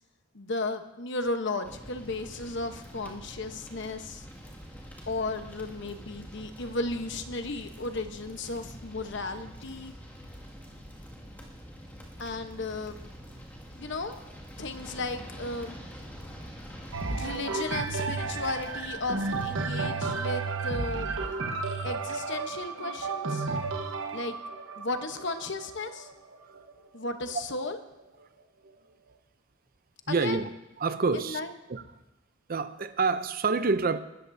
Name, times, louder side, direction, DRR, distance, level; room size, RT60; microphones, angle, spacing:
voice 1, 0.3-4.3 5.1-9.9 12.2-13.0 13.8-14.2 14.6-15.8 17.1-21.1 21.8-23.5 24.1-24.4 24.8-26.1 26.9-27.8 30.1-30.4 31.2-31.5, left 2 dB, 60° left, 1.0 m, -34 dB
sound 1, 1.6-19.8, equal, 10° left, 2.1 m, -46 dB
sound 2, 16.9-26.7 27.4-27.5, right 3 dB, 65° right, 1.2 m, -32 dB
voice 2, 23.7-24.2 30.1-30.5 30.8-31.4 31.7-31.8 32.5-34.0, right 4 dB, 45° right, 0.6 m, -28 dB
20.0 x 13.5 x 2.7 m
head